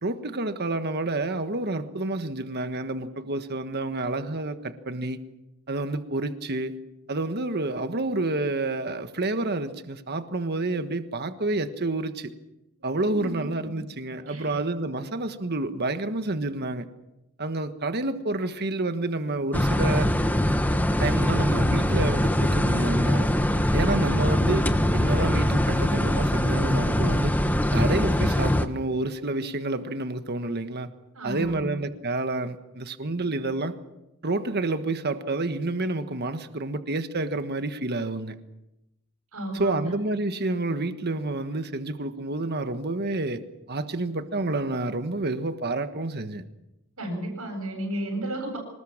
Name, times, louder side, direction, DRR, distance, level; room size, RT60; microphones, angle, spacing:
voice 1, 0.0-5.2 5.7-6.8 7.1-12.3 12.8-16.9 17.4-20.1 21.0-23.3 23.7-27.3 27.7-30.9 31.2-33.7 34.2-38.4 39.5-43.4 43.7-46.4, right 2 dB, 50° right, 1.5 m, -29 dB
voice 2, 13.1-13.7 14.3-14.6 31.1-31.7 39.3-39.9 47.0-48.6, right 1 dB, 80° right, 7.8 m, -33 dB
sound 1, 19.5-28.7, left 1 dB, 10° left, 1.2 m, -22 dB
25.5 x 20.0 x 7.4 m
head